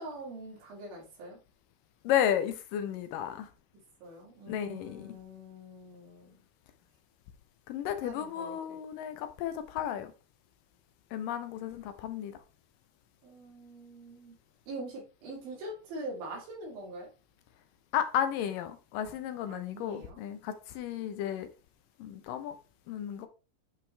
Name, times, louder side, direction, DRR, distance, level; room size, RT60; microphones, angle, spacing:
voice 1, 0.0-1.4 4.0-6.4 8.0-8.8 13.2-14.4 14.7-17.1 19.5-20.2, right 1 dB, 80° right, 4.6 m, -43 dB
voice 2, 2.0-3.5 4.5-5.1 7.7-10.1 11.1-12.3 17.9-21.5 22.0-22.6 22.9-23.3, left 10 dB, 75° left, 2.4 m, -33 dB
10.5 x 5.2 x 3.3 m
omnidirectional pair, 4.1 m